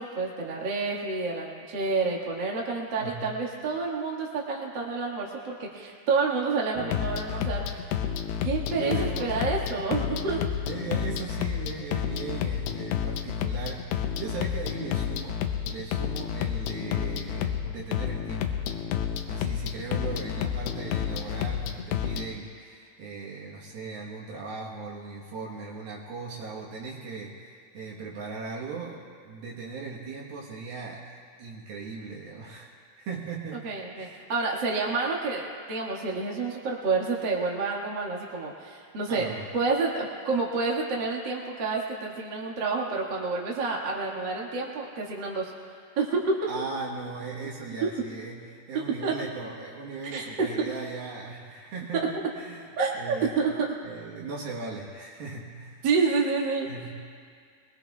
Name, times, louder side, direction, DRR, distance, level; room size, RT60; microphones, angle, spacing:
voice 1, 0.0-7.8 8.4-10.4 33.6-35.4 35.7-39.2 39.5-45.5 46.0-46.3 49.0-49.1 50.1-50.2 52.8-53.5 55.8-56.7, right 4 dB, 45° right, -3 dB, 1.6 m, -29 dB
voice 2, 3.0-3.4 8.7-9.5 10.6-18.6 19.0-31.1 31.4-33.7 34.0-34.2 39.1-39.5 46.5-53.4 53.8-55.8 56.7-56.9, right 4 dB, 70° right, -4 dB, 3.1 m, -38 dB
sound 1, 6.8-22.3, left 9 dB, 85° left, 2.8 m, -30 dB
23.0 x 21.5 x 2.4 m, 2.1 s
omnidirectional pair, 4.7 m